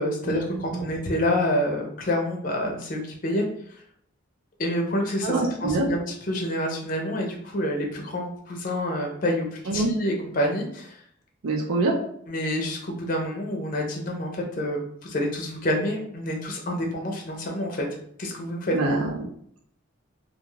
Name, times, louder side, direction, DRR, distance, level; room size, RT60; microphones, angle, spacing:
voice 1, 0.0-3.5 4.6-11.0 12.3-17.9 18.2-18.8, left 1 dB, 40° left, 1 dB, 0.5 m, -28 dB
voice 2, 5.2-5.9 9.7-9.9 11.4-11.9 18.7-19.3, right 2 dB, 85° right, -1 dB, 0.5 m, -24 dB
2.4 x 2.3 x 3.1 m, 0.65 s
head